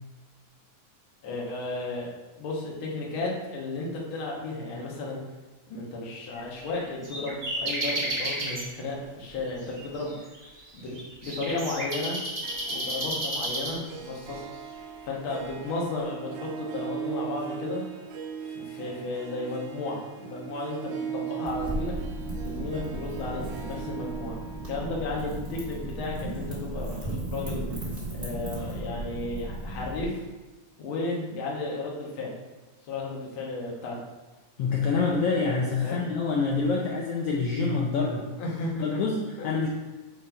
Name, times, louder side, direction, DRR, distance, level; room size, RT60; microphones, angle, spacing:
voice 1, 1.2-5.2 5.7-10.2 10.7-11.0 11.2-12.2 12.7-14.5 15.0-17.8 18.4-21.9 22.4-24.4 24.7-27.6 28.1-30.2 30.8-32.4 32.8-34.0 35.8-36.0 38.4-39.1 39.4-39.5, left 2 dB, 50° left, -3 dB, 1.8 m, -34 dB
sound 1, 6.3-8.7 9.3-14.2, right 1 dB, 50° right, 0.4 m, -32 dB
Harp, 12.2-27.6, right 7 dB, 85° right, 2.1 m, -39 dB
Wind / Fire, 21.4-30.0, right 1 dB, 20° right, 1.6 m, -35 dB
voice 2, 34.6-38.2 38.8-39.7, left 4 dB, 80° left, -1 dB, 1.3 m, -26 dB
8.3 x 3.3 x 4.5 m, 1.2 s
omnidirectional pair, 3.5 m